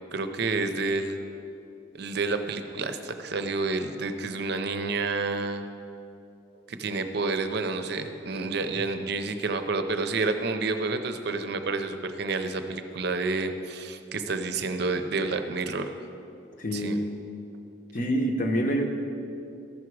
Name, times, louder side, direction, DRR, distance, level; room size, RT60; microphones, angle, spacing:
voice 1, 0.1-1.2 1.9-5.6 6.7-15.9 16.7-16.9, right 3 dB, 55° right, 8 dB, 0.6 m, -29 dB
voice 2, 16.6-17.0 17.9-18.9, equal, 45° left, 3 dB, 0.9 m, -26 dB
13.5 x 5.9 x 4.7 m, 2.7 s
head